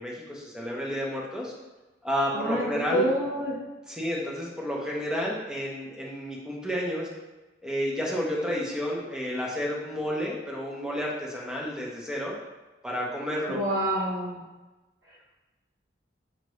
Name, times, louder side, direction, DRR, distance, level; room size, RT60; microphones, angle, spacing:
voice 1, 0.0-1.5 2.0-3.1 3.9-7.1 7.6-12.3 12.8-13.6, equal, 5° right, -4 dB, 0.8 m, -31 dB
voice 2, 2.3-2.6 2.9-3.6 13.5-14.4 15.0-15.3, right 1 dB, 65° right, -11 dB, 1.1 m, -28 dB
6.5 x 2.5 x 3.1 m, 1.1 s
head